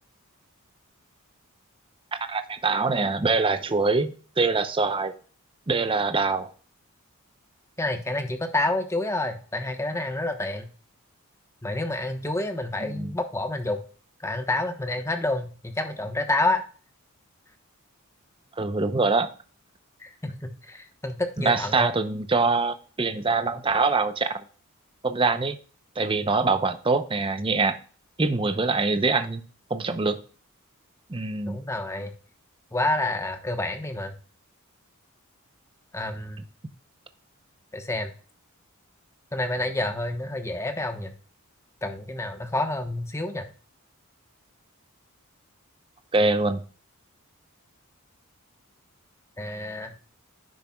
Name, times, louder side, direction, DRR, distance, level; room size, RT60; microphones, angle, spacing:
voice 1, 2.3-5.1 5.7-6.5 12.8-13.1 18.6-19.3 21.4-24.4 25.0-25.6 26.0-27.8 28.2-29.4 29.7-30.2 31.1-31.6 46.1-46.6, right 3 dB, 25° right, 10 dB, 0.6 m, -24 dB
voice 2, 7.8-10.7 11.6-13.8 14.2-16.6 20.0-21.9 31.5-32.1 32.7-34.1 35.9-36.4 37.7-38.1 39.3-41.1 41.8-43.5 49.4-49.9, left 2 dB, 15° left, 6 dB, 1.0 m, -28 dB
10.5 x 6.7 x 2.3 m, 0.39 s
head